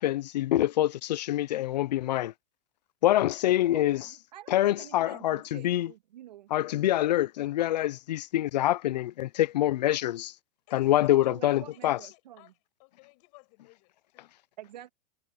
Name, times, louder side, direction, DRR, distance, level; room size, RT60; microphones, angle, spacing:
voice 1, 0.0-2.3 3.0-4.0 4.5-5.9 6.5-10.3 10.7-12.0, left 14 dB, 80° left, 0.6 m, -25 dB
voice 2, 3.7-6.5 11.1-12.4 14.6-14.9, right 12 dB, 85° right, 1.9 m, -48 dB
voice 3, 10.7-14.3, left 32 dB, 50° left, 7.5 m, -57 dB
supercardioid pair, 140°, 21 cm